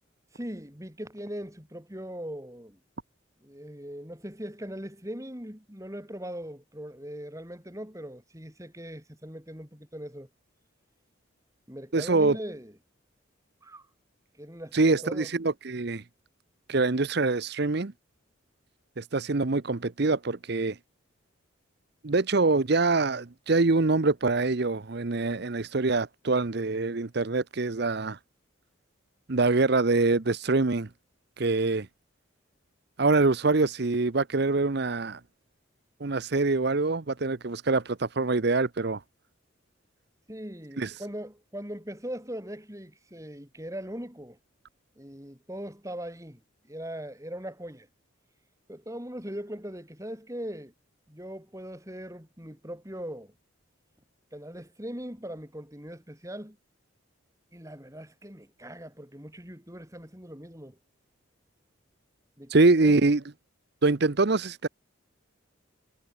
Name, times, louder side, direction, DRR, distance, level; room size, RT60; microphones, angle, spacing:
voice 1, 0.3-2.8 3.4-10.3 11.7-12.8 13.6-13.9 14.4-15.3 40.3-44.4 45.0-47.9 48.7-50.7 51.1-53.3 54.3-56.6 57.5-60.8 62.4-63.0, equal, 15° right, 3.6 m, -40 dB
voice 2, 11.9-12.4 14.7-16.0 16.7-17.9 19.0-20.8 22.0-28.2 29.3-30.9 31.4-31.9 33.0-35.2 36.0-39.0 40.8-40.9 62.5-63.2 63.8-64.7, right 3 dB, 50° right, 0.8 m, -24 dB
head